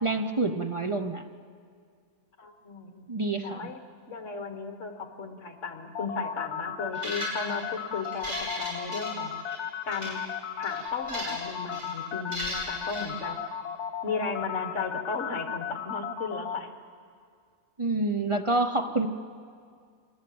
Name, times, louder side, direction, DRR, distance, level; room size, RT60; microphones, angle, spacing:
voice 1, 0.0-1.3 3.1-3.7 17.8-19.1, right 2 dB, 30° right, 6 dB, 0.6 m, -27 dB
voice 2, 2.4-3.1 3.4-3.8 4.1-9.4 9.9-10.2 10.6-13.4 14.0-16.7, left 4 dB, 55° left, 6 dB, 1.9 m, -35 dB
sound 1, 5.9-16.6, left 9 dB, 85° left, 1.5 m, -35 dB
sound 2, 6.9-7.6 8.0-9.6 9.9-10.1 10.6-11.4 11.7-11.9 12.3-13.1, equal, 50° right, 7.6 m, -36 dB
25.5 x 19.5 x 7.8 m, 2.2 s
omnidirectional pair, 1.6 m